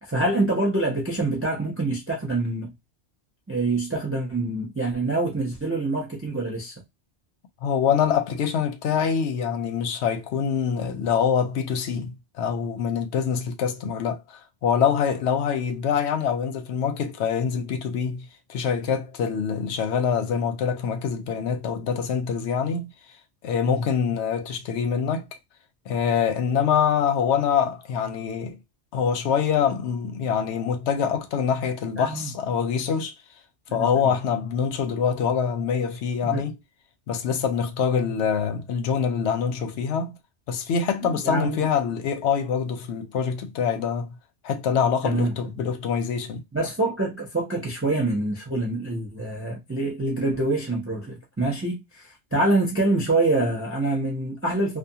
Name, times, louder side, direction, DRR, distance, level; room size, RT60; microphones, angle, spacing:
voice 1, 0.0-2.7 3.5-6.7 23.7-23.9 32.0-32.3 33.7-33.9 36.2-36.4 41.2-41.6 45.0-45.3 46.5-54.8, right 2 dB, 15° right, 0.6 m, -25 dB
voice 2, 7.6-22.9 23.4-25.3 25.9-28.6 28.9-33.1 33.7-36.5 37.1-40.2 40.5-44.2 44.4-46.4, left 7 dB, 75° left, 0.8 m, -25 dB
2.4 x 2.3 x 2.7 m
omnidirectional pair, 1.2 m